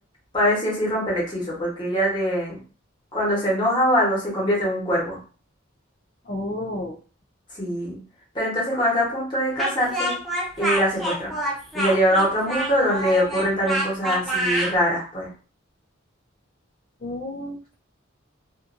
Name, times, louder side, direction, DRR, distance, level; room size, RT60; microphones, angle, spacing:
voice 1, 0.3-2.6 3.1-5.2 7.5-8.0 8.3-10.1 10.6-11.3 11.7-15.3, equal, 20° left, -5 dB, 1.1 m, -23 dB
voice 2, 6.3-7.0 17.0-17.7, left 1 dB, 40° left, -3 dB, 0.4 m, -31 dB
Speech, 9.6-14.7, right 1 dB, ahead, 0.6 m, -27 dB
2.5 x 2.5 x 2.5 m, 0.38 s
head